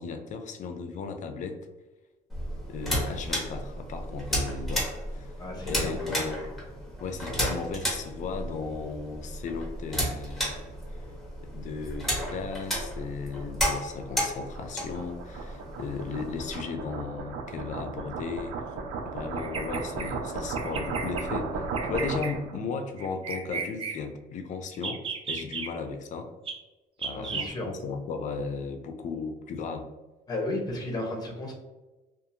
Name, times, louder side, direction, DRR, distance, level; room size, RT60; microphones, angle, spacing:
voice 1, 0.0-1.6 2.7-4.9 5.1-5.3 5.7-6.5 7.0-10.6 11.5-18.6 19.1-26.3 27.0-29.9, left 4 dB, 45° left, 6 dB, 0.4 m, -35 dB
sound 1, 2.3-16.6, equal, ahead, 1.2 m, -33 dB
voice 2, 5.4-6.2 27.1-27.7 30.3-31.5, left 2 dB, 25° left, 0 dB, 0.8 m, -33 dB
sound 2, 12.6-22.6, right 4 dB, 85° right, 0.5 m, -36 dB
Bird vocalization bird call bird song, 19.4-20.1 20.6-21.2 21.7-22.3 23.0-24.0 24.7-25.7 26.5-26.6 27.0-27.5, right 5 dB, 35° right, 0.4 m, -34 dB
2.7 x 2.4 x 2.5 m, 1.1 s
cardioid pair, 110°, 17 cm